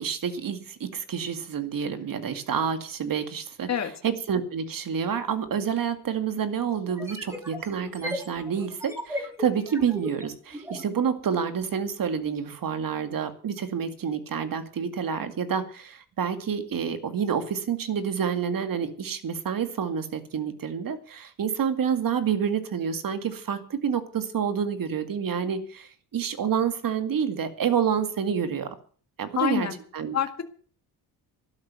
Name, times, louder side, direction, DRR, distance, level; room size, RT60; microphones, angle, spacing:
voice 1, 0.0-3.7 4.0-28.7 29.2-29.7 29.9-30.2, right 7 dB, 55° right, 9 dB, 2.2 m, -28 dB
sound 1, 5.5-5.6 6.9-10.9, left 1 dB, 5° right, 3.2 m, -36 dB
voice 2, 29.4-29.8 30.1-30.4, left 8 dB, 40° left, 6 dB, 2.0 m, -26 dB
12.5 x 12.0 x 6.9 m, 0.44 s
cardioid pair, 125°, 40 cm